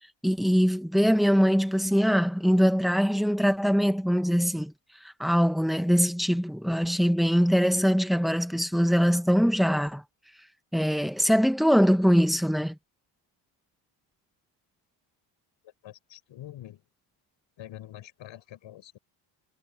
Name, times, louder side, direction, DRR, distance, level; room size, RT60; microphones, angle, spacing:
voice 1, 0.2-4.7 5.2-10.0 10.7-12.8, equal, ahead, 1.4 m, -22 dB
voice 2, 15.6-16.8 17.6-19.0, left 13 dB, 65° left, 7.7 m, -45 dB
cardioid pair, 125°, 49 cm